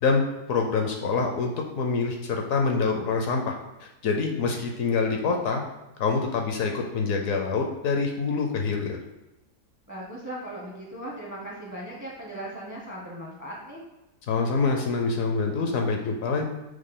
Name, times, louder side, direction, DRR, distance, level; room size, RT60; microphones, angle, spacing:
voice 1, 0.0-1.5 1.8-5.6 6.0-9.0 14.3-16.4, left 4 dB, 70° left, 2 dB, 0.9 m, -26 dB
voice 2, 9.9-13.8, right 1 dB, 20° right, -3 dB, 0.5 m, -38 dB
6.2 x 2.2 x 3.7 m, 1.0 s
omnidirectional pair, 1.6 m